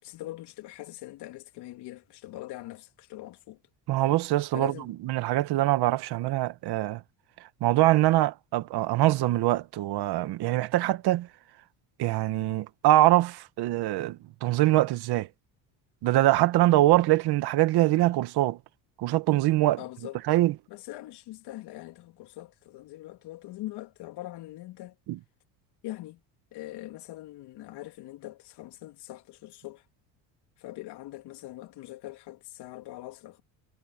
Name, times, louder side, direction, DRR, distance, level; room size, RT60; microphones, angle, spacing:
voice 1, 0.0-3.6 4.5-4.9 19.8-20.2 20.7-25.0 25.8-26.2 26.5-29.8 30.6-33.4, left 16 dB, 70° left, 3.6 m, -42 dB
voice 2, 3.9-4.7 5.0-7.0 7.6-11.3 12.0-15.3 16.0-18.6 19.0-19.8 20.3-20.5 25.1-25.2, right 16 dB, 70° right, 1.8 m, -23 dB
supercardioid pair, 95°, 41 cm